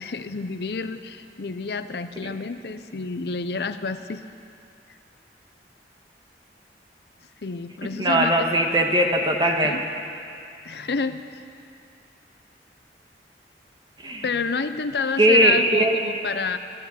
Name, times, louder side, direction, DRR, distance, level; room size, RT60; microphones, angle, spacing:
voice 1, 0.0-4.2 7.4-8.5 9.6-9.8 10.6-11.4 14.2-16.6, left 4 dB, 65° left, 11 dB, 0.6 m, -29 dB
voice 2, 8.0-9.8 14.0-14.3 15.2-16.0, right 1 dB, 25° right, 2 dB, 1.3 m, -19 dB
15.0 x 11.5 x 8.2 m, 2.5 s
head